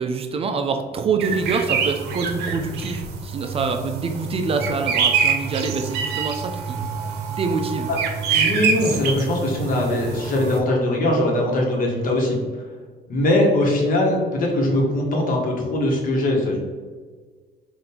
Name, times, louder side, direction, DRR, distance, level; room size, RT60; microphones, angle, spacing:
voice 1, 0.0-7.0 7.3-7.9, right 4 dB, 35° right, 6 dB, 0.4 m, -26 dB
sound 1, 1.2-10.6, right 6 dB, 75° right, 0.7 m, -25 dB
voice 2, 8.3-12.4 13.1-16.6, left 1 dB, 55° left, -1 dB, 1.2 m, -21 dB
3.8 x 2.6 x 4.3 m, 1.5 s
cardioid pair, 110°, 17 cm